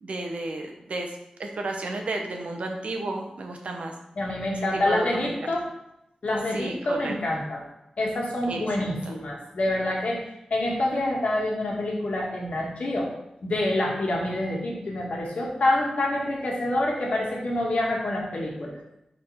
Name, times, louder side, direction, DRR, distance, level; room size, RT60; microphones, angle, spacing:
voice 1, 0.0-1.1 1.4-3.9 4.9-5.5 6.5-7.1 8.5-9.1, right 2 dB, 75° right, 3 dB, 1.0 m, -33 dB
voice 2, 4.2-5.7 6.2-7.6 8.0-13.1 13.4-18.8, left 1 dB, 75° left, -3 dB, 1.7 m, -27 dB
5.0 x 4.5 x 4.8 m, 0.84 s
wide cardioid pair, 70°, 2 cm